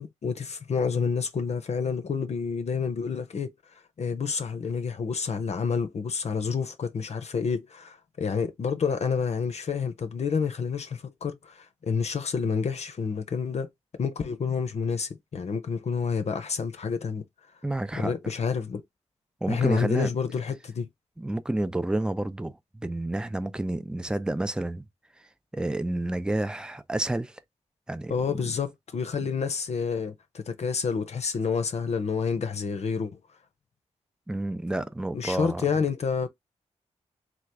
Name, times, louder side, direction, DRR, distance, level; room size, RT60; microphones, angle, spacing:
voice 1, 0.0-3.5 4.0-13.7 14.0-17.2 17.9-18.8 19.5-20.9 28.1-30.1 30.5-33.2 35.1-36.3, left 6 dB, 60° left, 0.7 m, -29 dB
voice 2, 17.6-18.1 19.4-20.1 21.2-24.9 25.5-27.4 27.9-28.1 34.3-35.6, right 1 dB, 5° right, 0.5 m, -29 dB
3.0 x 2.4 x 3.4 m
cardioid pair, 45°, 13 cm